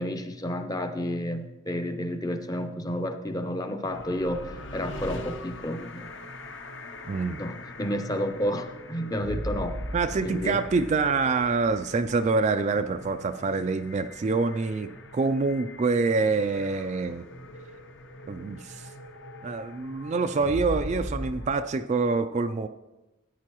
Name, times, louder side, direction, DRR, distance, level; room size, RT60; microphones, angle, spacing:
voice 1, 0.0-6.1 7.4-9.8 10.2-10.6, equal, 20° left, 8 dB, 0.6 m, -31 dB
sound 1, 3.9-21.6, equal, 60° left, 0.9 m, -40 dB
voice 2, 7.0-7.4 9.9-17.3 18.3-18.9 19.4-22.7, right 4 dB, 35° right, 8 dB, 0.3 m, -26 dB
14.0 x 9.4 x 3.0 m, 1.0 s
head